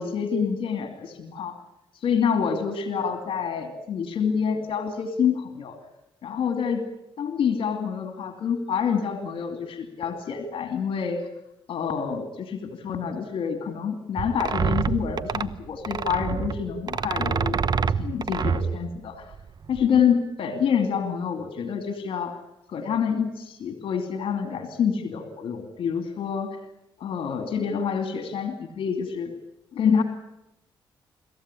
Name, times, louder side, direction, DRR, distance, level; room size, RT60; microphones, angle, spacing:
voice 1, 0.0-1.6 2.0-5.8 6.2-6.9 7.2-11.2 11.7-17.6 18.0-19.3 19.7-22.4 22.7-26.6 27.0-29.3 29.7-30.0, left 7 dB, 70° left, 7 dB, 2.7 m, -27 dB
sound 1, 14.2-20.0, right 6 dB, 45° right, 0.9 m, -27 dB
25.5 x 15.0 x 10.0 m, 0.87 s
cardioid pair, 75°, 10 cm